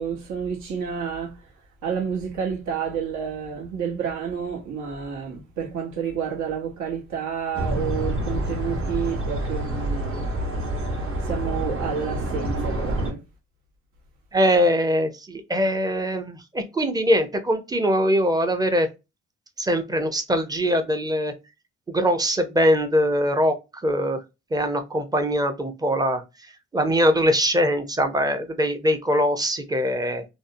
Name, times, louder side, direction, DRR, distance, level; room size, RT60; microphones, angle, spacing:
voice 1, 0.0-1.3 1.8-10.3 11.3-13.2, right 7 dB, 75° right, 0.9 m, -30 dB
sound 1, 7.5-13.1, right 1 dB, 45° right, 0.9 m, -27 dB
voice 2, 14.3-18.9 19.6-21.3 21.9-23.5 23.8-24.2 24.5-26.2 26.7-30.3, equal, 15° right, 0.5 m, -22 dB
2.6 x 2.0 x 2.5 m
cardioid pair, 90°, 30 cm